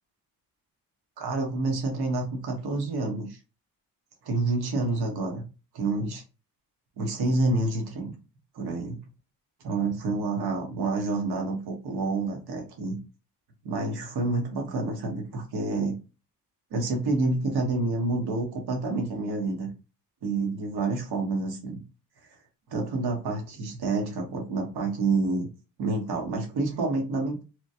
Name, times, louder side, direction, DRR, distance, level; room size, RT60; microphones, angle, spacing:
voice 1, 1.2-3.4 4.2-5.4 5.7-6.2 7.0-8.1 8.5-9.0 9.6-13.0 13.6-15.9 16.7-19.7 20.2-21.8 22.7-25.5 25.8-27.4, right 3 dB, 70° right, 2 dB, 1.1 m, -28 dB
3.0 x 2.2 x 2.7 m, 0.31 s
cardioid pair, 80°, 40 cm